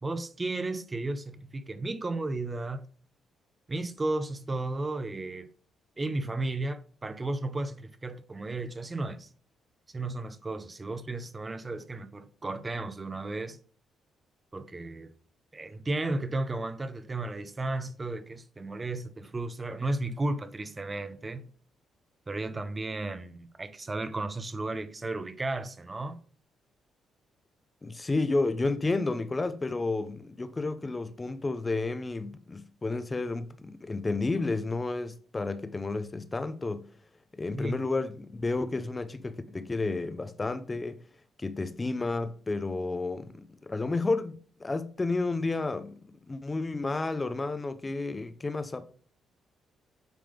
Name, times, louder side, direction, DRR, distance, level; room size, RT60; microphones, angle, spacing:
voice 1, 0.0-2.8 3.7-5.5 6.0-9.3 9.9-13.6 14.5-15.1 15.5-21.5 22.3-26.2 37.5-37.9, right 2 dB, 25° right, 0.7 m, -34 dB
voice 2, 27.8-36.9 37.3-41.0 41.4-48.8, left 3 dB, 25° left, 0.6 m, -31 dB
9.1 x 3.4 x 5.1 m
cardioid pair, 90°, 0 cm